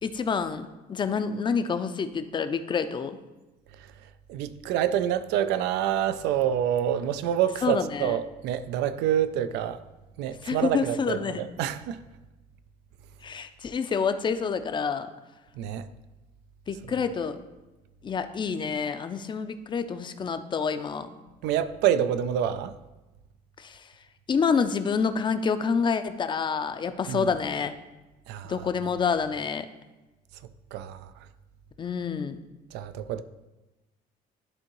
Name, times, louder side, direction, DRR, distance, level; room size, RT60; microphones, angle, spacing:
voice 1, 0.0-3.2 7.6-8.2 10.4-11.4 13.2-15.1 16.7-17.4 18.0-21.1 23.6-23.8 24.3-27.7 28.4-29.7 31.8-32.4, left 6 dB, 30° left, 0.4 m, -28 dB
voice 2, 4.3-9.8 10.2-12.0 15.6-15.9 21.4-22.7 27.1-27.3 28.3-28.7 30.7-31.0 32.7-33.2, right 10 dB, 90° right, 0.4 m, -27 dB
11.0 x 3.7 x 3.0 m
cardioid pair, 110°, 17 cm